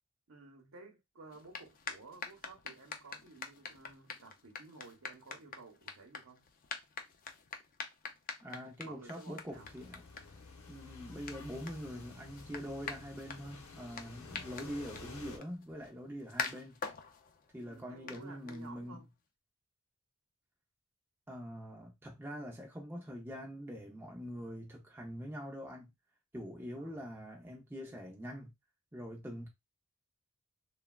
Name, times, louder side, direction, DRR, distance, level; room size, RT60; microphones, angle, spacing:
voice 1, 0.3-6.5 8.8-9.7 17.6-19.1 26.8-27.0, right 3 dB, 70° right, 0.9 m, -54 dB
sound 1, 1.3-19.0, left 5 dB, 40° left, 0.4 m, -46 dB
voice 2, 8.4-10.0 10.7-16.8 17.5-19.0 21.3-25.9 26.3-28.5 28.9-29.5, equal, 10° right, 0.5 m, -44 dB
sound 2, 9.5-15.4, left 3 dB, 75° left, 0.7 m, -51 dB
3.3 x 2.2 x 2.3 m
head